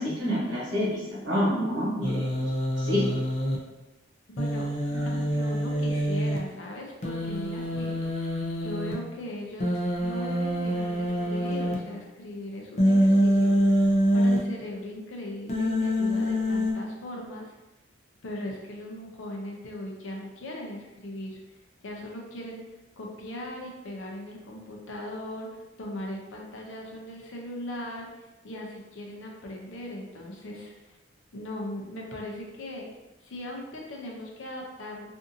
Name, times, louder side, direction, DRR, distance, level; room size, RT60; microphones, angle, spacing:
voice 1, 0.0-2.3 2.8-3.0 4.9-5.2, equal, 75° right, -6 dB, 1.2 m, -28 dB
Human voice, 2.0-3.6 4.4-6.4 7.0-8.9 9.6-11.7 12.8-14.4 15.5-16.7, equal, 35° left, 0.4 m, -25 dB
voice 2, 4.3-4.7 5.1-8.2 8.6-17.6 18.2-21.4 21.8-22.6 23.0-31.0 31.3-32.9 33.2-35.1, left 1 dB, 85° left, 0 dB, 0.5 m, -39 dB
2.6 x 2.5 x 2.6 m, 1.0 s
head